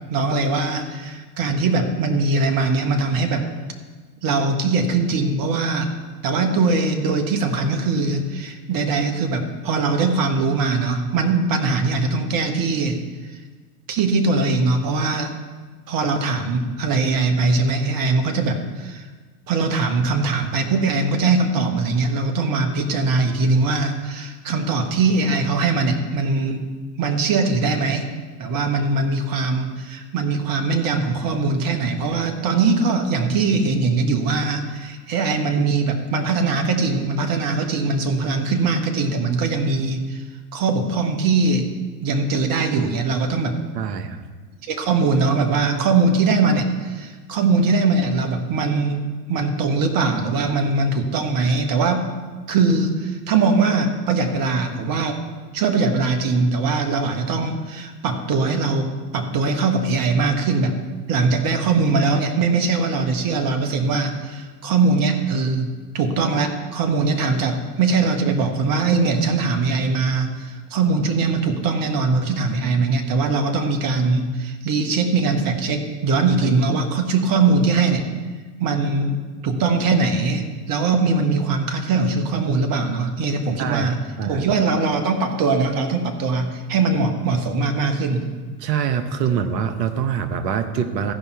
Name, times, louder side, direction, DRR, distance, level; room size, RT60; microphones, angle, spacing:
voice 1, 0.1-3.5 4.2-5.9 6.2-13.0 13.9-15.3 15.9-19.0 19.5-26.6 27.0-28.1 28.4-40.2 40.5-41.7 42.0-43.6 44.6-49.0 49.3-52.0 52.5-55.2 55.5-58.9 59.1-60.7 61.1-78.1 78.6-84.0 84.2-88.2, right 3 dB, 45° right, 6 dB, 1.5 m, -21 dB
voice 2, 43.7-44.3 76.4-76.5 83.6-83.9 84.2-84.5 88.6-91.1, right 7 dB, 75° right, 9 dB, 1.0 m, -24 dB
15.0 x 5.5 x 4.6 m, 1.4 s
hypercardioid pair, 85°, 50 cm